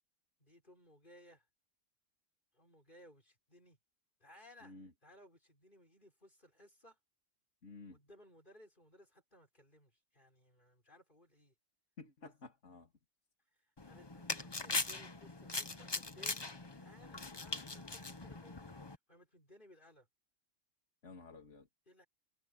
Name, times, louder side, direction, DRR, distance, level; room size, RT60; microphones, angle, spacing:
voice 1, 0.4-1.5 2.5-3.8 4.2-4.8 5.0-7.0 7.9-11.5 13.8-18.8 19.1-20.1 21.9-22.1, left 1 dB, 40° left, 6.9 m, -62 dB
voice 2, 4.6-4.9 7.6-8.0 12.0-12.9 21.0-21.7, left 3 dB, 70° left, 2.8 m, -53 dB
sound 1, 13.8-19.0, left 3 dB, 20° left, 1.0 m, -41 dB
omnidirectional pair, 1.3 m